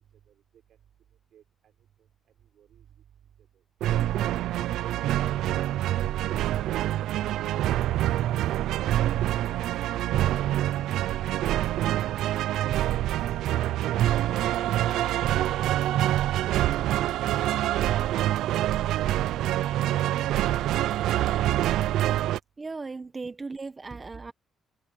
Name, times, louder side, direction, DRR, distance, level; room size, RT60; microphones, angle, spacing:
voice 1, 1.3-1.7 2.5-2.9 3.4-3.5, right 10 dB, 70° right, 6.3 m, -58 dB
sound 1, 3.8-22.4, right 13 dB, 85° right, 0.6 m, -26 dB
voice 2, 22.6-24.3, right 3 dB, 25° right, 1.4 m, -37 dB
cardioid pair, 90°, 0 cm